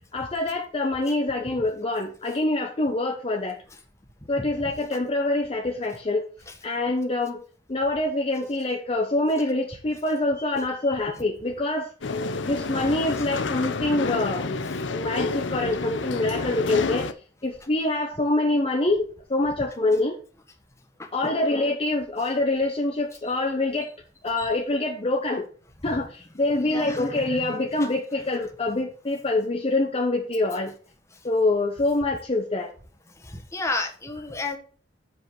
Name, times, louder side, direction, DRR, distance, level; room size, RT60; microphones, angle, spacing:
voice 1, 0.1-3.6 4.3-6.2 6.6-7.4 7.7-11.9 12.4-14.6 14.9-17.1 17.4-20.1 21.1-23.9 24.2-25.5 25.8-30.8 31.2-32.7, left 2 dB, 30° left, 1 dB, 0.8 m, -25 dB
sound 1, 12.0-17.1, left 3 dB, 85° left, 0.7 m, -29 dB
voice 2, 21.0-21.3 24.4-24.5 26.6-27.0 33.3-34.6, left 2 dB, 15° left, 4 dB, 1.2 m, -31 dB
7.0 x 5.2 x 5.9 m, 0.42 s
head